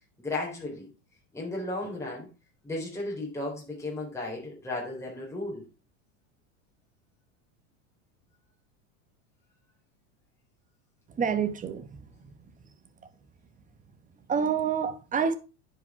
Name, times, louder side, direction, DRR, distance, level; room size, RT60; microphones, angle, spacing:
voice 1, 0.2-0.9 1.3-2.3 2.6-5.6, left 2 dB, 5° left, 4.0 m, -34 dB
voice 2, 11.1-12.3 14.3-15.3, right 6 dB, 20° right, 1.1 m, -28 dB
10.5 x 5.2 x 4.8 m
supercardioid pair, 135°, 38 cm